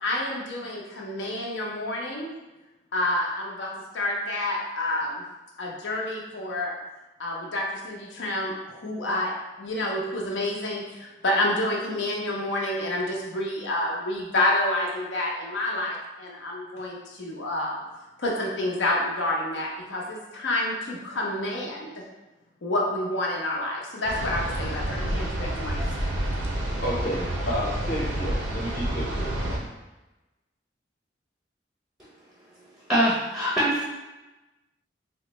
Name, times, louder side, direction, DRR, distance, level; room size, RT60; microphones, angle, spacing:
voice 1, 0.0-2.3 2.9-5.2 5.6-6.7 7.2-9.3 9.6-17.7 18.2-22.0 22.6-25.8, left 1 dB, 85° left, -2 dB, 0.7 m, -28 dB
sound 1, 24.0-29.6, right 1 dB, 90° right, 0.6 m, -29 dB
voice 2, 26.8-29.3, equal, 50° left, -4 dB, 0.8 m, -31 dB
voice 3, 32.9-33.8, equal, 5° right, -7 dB, 0.5 m, -23 dB
3.6 x 2.2 x 2.9 m, 1.1 s
head